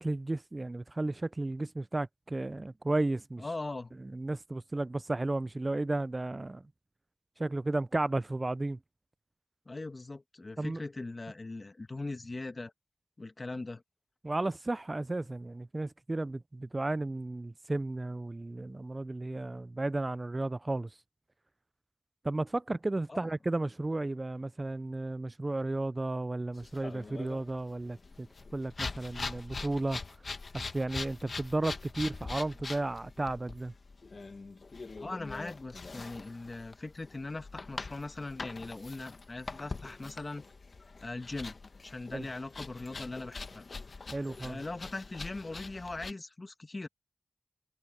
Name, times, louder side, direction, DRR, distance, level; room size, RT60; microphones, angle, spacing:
voice 1, 0.0-3.4 4.0-6.6 7.4-8.8 10.6-10.8 14.2-21.0 22.2-28.3 28.5-30.2 30.5-33.7 42.1-42.3 44.1-44.6, right 2 dB, 35° right, 0.3 m, -33 dB
voice 2, 3.4-3.9 9.6-12.7 13.2-13.8 23.1-23.3 35.0-40.4 41.0-41.6 41.8-43.6 44.4-46.9, left 2 dB, 45° left, 1.3 m, -40 dB
sound 1, 26.5-46.1, left 4 dB, 65° left, 1.3 m, -43 dB
wide cardioid pair, 65°, 0 cm